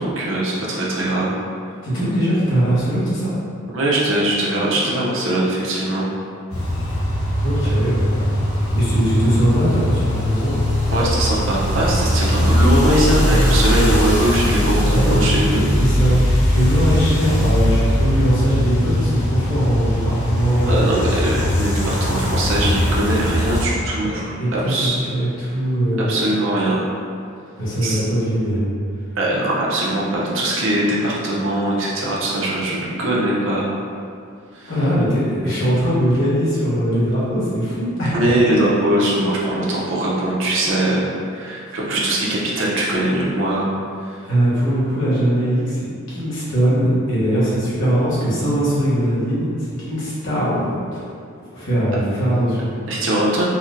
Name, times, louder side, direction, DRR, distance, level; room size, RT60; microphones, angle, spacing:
voice 1, 0.0-1.3 3.7-6.1 10.9-15.7 20.7-25.0 26.1-26.8 27.8-28.0 29.2-33.7 34.5-34.7 38.1-43.7 44.1-44.2 52.9-53.4, right 1 dB, 60° right, -5 dB, 0.6 m, -21 dB
voice 2, 1.8-3.3 7.4-8.3 8.7-10.6 14.9-15.1 15.8-16.2 16.5-20.7 21.1-21.2 24.0-24.1 24.4-26.1 27.6-28.7 34.7-38.3 41.7-41.8 44.2-51.0 51.5-52.7, equal, 60° left, -10 dB, 1.2 m, -20 dB
sound 1, 6.5-23.6, equal, 85° left, 0.8 m, -20 dB
4.2 x 2.1 x 2.5 m, 2.3 s
head